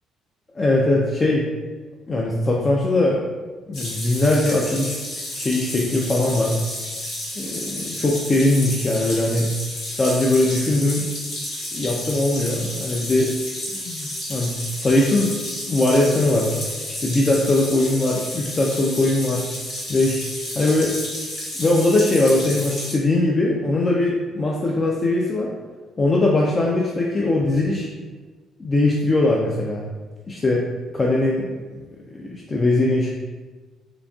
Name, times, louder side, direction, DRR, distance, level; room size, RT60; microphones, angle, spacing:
voice 1, 0.5-1.5 2.1-3.2 3.7-5.0 5.3-6.6 7.4-9.5 9.9-11.1 11.7-13.4 13.7-15.4 15.7-16.5 16.9-19.5 19.9-20.2 20.6-21.0 21.6-25.5 26.0-27.9 28.6-29.9 30.3-30.7 30.9-31.8 32.1-33.1, left 2 dB, 20° left, -2 dB, 0.3 m, -20 dB
sound 1, 3.7-22.9, left 1 dB, 60° left, 1.4 m, -31 dB
3.8 x 3.5 x 2.3 m, 1.3 s
cardioid pair, 165°, 0 cm